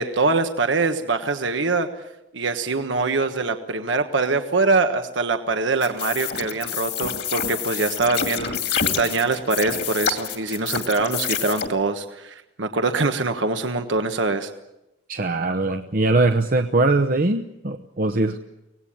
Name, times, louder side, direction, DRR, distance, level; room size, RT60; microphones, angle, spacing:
voice 1, 0.0-1.9 2.3-14.5, right 3 dB, 85° right, 7 dB, 1.3 m, -23 dB
sound 1, 5.8-11.7, left 7 dB, 60° left, 2.4 m, -28 dB
voice 2, 15.1-18.4, right 2 dB, 50° right, 6 dB, 0.9 m, -21 dB
24.5 x 18.5 x 8.7 m, 0.95 s
head